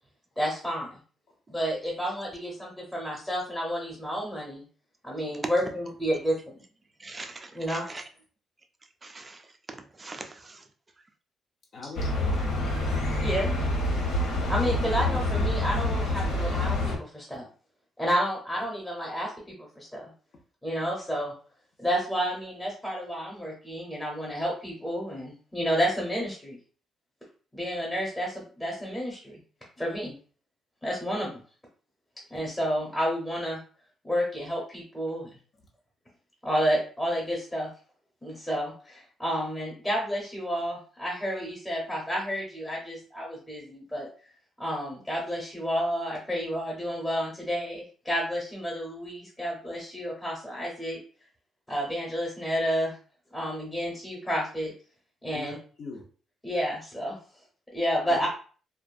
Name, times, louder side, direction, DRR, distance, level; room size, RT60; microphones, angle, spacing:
voice 1, 0.4-1.0 1.5-4.6 5.0-6.4 7.5-7.9 13.2-13.6 14.5-17.5 18.0-20.1 20.6-21.3 21.8-26.6 27.5-29.4 29.8-30.1 30.8-31.4 32.3-33.6 34.0-35.3 36.4-37.7 38.2-44.1 44.6-51.0 51.7-53.0 53.3-54.7 55.2-55.6 56.4-57.2 57.7-58.3, equal, 5° left, -3 dB, 0.8 m, -30 dB
voice 2, 7.0-8.0 9.0-9.4 9.7-10.6, right 3 dB, 25° right, 6 dB, 0.4 m, -42 dB
voice 3, 11.7-12.6 55.2-56.0 58.1-58.3, left 3 dB, 50° left, 0 dB, 0.6 m, -42 dB
sound 1, 11.9-17.0, left 1 dB, 80° left, 1.0 m, -27 dB
2.5 x 2.2 x 2.5 m, 0.40 s
cardioid pair, 125°, 0 cm